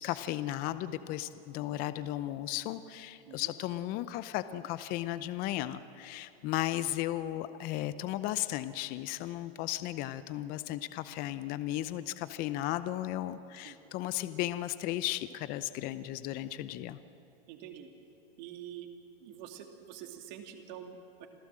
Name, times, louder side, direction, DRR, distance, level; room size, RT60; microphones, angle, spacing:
voice 1, 0.0-17.0, left 14 dB, 30° left, 13 dB, 0.7 m, -35 dB
voice 2, 17.5-17.9 18.4-18.9 19.2-21.3, right 10 dB, 45° right, 4 dB, 2.6 m, -46 dB
27.5 x 16.0 x 7.6 m, 2.8 s
hypercardioid pair, 135°, 31 cm